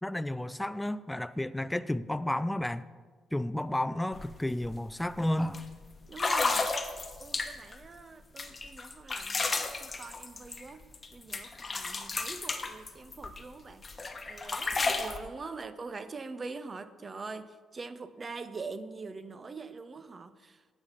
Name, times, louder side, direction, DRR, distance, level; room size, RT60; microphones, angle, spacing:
voice 1, 0.0-2.8 3.3-5.6, left 1 dB, 10° left, 14 dB, 0.4 m, -32 dB
sound 1, 4.1-4.3 4.6-4.9 5.5-5.6 6.1-7.8 8.4-11.1 11.3-13.4 13.8-15.2, left 3 dB, 30° left, 1.1 m, -32 dB
voice 2, 6.1-6.7 7.2-10.9 11.1-13.8 14.3-20.6, right 4 dB, 35° right, 13 dB, 0.6 m, -43 dB
9.5 x 8.1 x 5.7 m, 1.5 s
cardioid pair, 90°, 0 cm